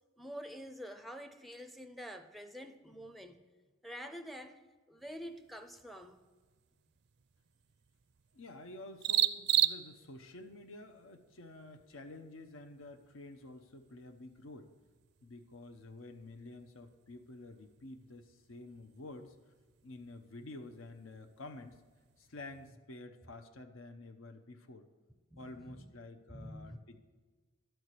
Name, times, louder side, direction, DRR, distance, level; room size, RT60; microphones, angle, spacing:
voice 1, 0.2-3.4 3.8-4.6 4.9-6.2 25.3-25.9 26.3-26.8, equal, ahead, 8 dB, 0.5 m, -47 dB
sound 1, 5.0-22.7, right 12 dB, 55° right, 0.4 m, -41 dB
voice 2, 8.3-14.7 15.2-19.4 19.8-21.8 22.2-24.9 25.4-27.0, left 2 dB, 80° left, 7 dB, 0.7 m, -50 dB
11.5 x 4.6 x 8.2 m, 1.4 s
head